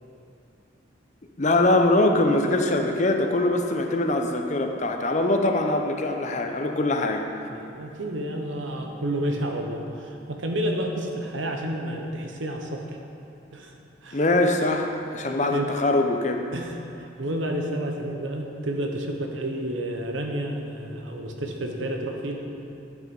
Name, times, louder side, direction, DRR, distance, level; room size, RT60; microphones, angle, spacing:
voice 1, 1.4-7.2 14.1-16.4, left 2 dB, 40° left, 4 dB, 0.7 m, -23 dB
voice 2, 7.5-12.8 13.5-13.7 14.0-14.2 15.5-15.7 16.5-22.3, right 1 dB, 85° right, 2 dB, 1.1 m, -30 dB
11.5 x 6.0 x 5.3 m, 2.8 s
head